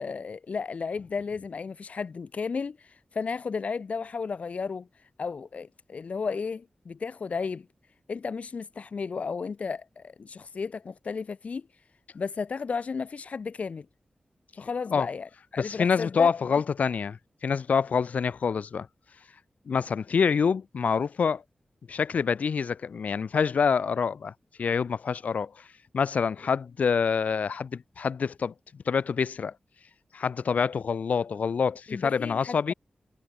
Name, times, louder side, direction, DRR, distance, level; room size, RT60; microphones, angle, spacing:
voice 1, 0.0-4.9 5.2-7.7 8.1-11.6 12.1-13.8 14.6-16.3 31.9-32.7, left 5 dB, 70° left, 1.4 m, -33 dB
voice 2, 15.6-18.9 19.7-21.4 21.9-24.3 24.6-25.7 25.9-28.5 28.9-29.5 30.1-32.7, left 6 dB, 85° left, 2.1 m, -26 dB
wide cardioid pair, 95°, 2 cm